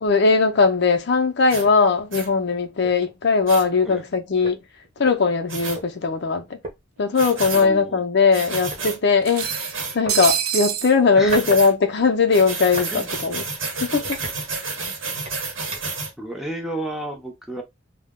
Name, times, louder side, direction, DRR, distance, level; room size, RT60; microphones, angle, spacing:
voice 1, 0.0-4.6 5.0-6.6 7.0-9.5 9.9-13.4 13.8-14.1, left 4 dB, 55° left, 0.5 m, -19 dB
sound 1, 1.5-1.7 2.1-2.3 3.5-3.6 5.5-5.8 7.1-7.7 8.3-9.0 9.4-10.0 11.3-11.7 12.3-16.1, right 4 dB, 65° right, 0.8 m, -30 dB
sound 2, 1.6-1.8 2.3-2.4 2.8-3.1 4.1-4.2 4.4-5.9 6.6-6.8 7.5-7.7 8.7-8.9 10.1-10.3 11.0-11.7 12.0-12.9 13.4-13.6 14.0-14.8 15.3-16.0, right 1 dB, 30° right, 0.9 m, -36 dB
sound 3, 5.8-5.9 6.2-6.3 7.4-7.5 7.8-7.9 9.2-10.9, right 10 dB, 85° right, 0.4 m, -26 dB
voice 2, 7.5-8.0 11.2-11.5 12.9-13.2 16.2-17.6, right 1 dB, ahead, 0.5 m, -32 dB
2.2 x 2.0 x 3.5 m
head